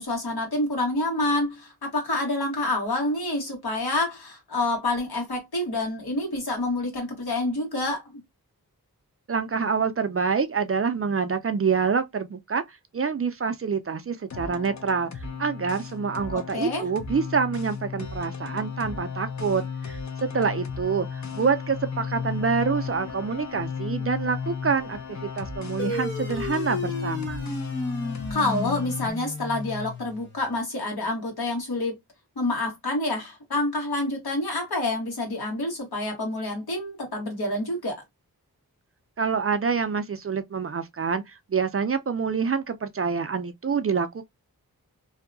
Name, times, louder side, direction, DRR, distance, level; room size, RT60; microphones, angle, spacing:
voice 1, 0.0-8.2 16.3-16.8 28.3-31.9 32.4-38.0, left 2 dB, 80° left, 1.3 m, -28 dB
voice 2, 9.3-15.1 15.4-27.4 39.2-44.2, right 5 dB, 40° right, 0.4 m, -27 dB
sound 1, 14.3-29.1, left 6 dB, 50° left, 0.6 m, -34 dB
sound 2, 25.8-30.7, left 2 dB, 30° left, 1.0 m, -33 dB
2.7 x 2.1 x 2.6 m
wide cardioid pair, 55°, 37 cm